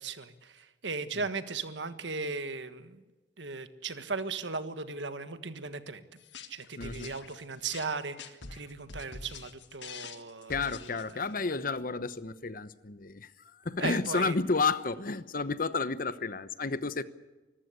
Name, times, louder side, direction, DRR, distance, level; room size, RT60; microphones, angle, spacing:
voice 1, 0.0-3.0 3.4-6.0 6.5-11.2 13.8-14.3, right 4 dB, 80° right, 11 dB, 1.5 m, -37 dB
sound 1, 6.2-11.3, left 5 dB, 80° left, 1.7 m, -45 dB
voice 2, 6.8-7.1 10.5-17.0, left 4 dB, 50° left, 14 dB, 1.0 m, -31 dB
24.5 x 15.0 x 9.6 m, 1.2 s
head